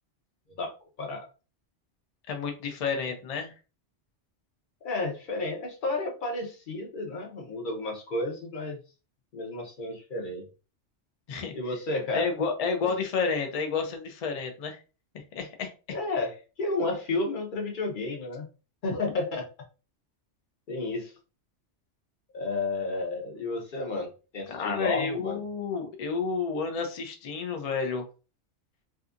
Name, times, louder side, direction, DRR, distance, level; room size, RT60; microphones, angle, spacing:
voice 1, 2.3-3.5 11.3-11.5 12.1-14.8 15.1-15.7 24.5-28.1, left 5 dB, 75° left, 4 dB, 0.3 m, -30 dB
voice 2, 4.8-8.8 9.3-10.5 11.5-12.2 15.9-18.5 18.8-19.5 20.7-21.1 22.3-25.4, left 2 dB, 50° left, 1 dB, 0.8 m, -32 dB
2.6 x 2.3 x 2.4 m, 0.33 s
omnidirectional pair, 1.2 m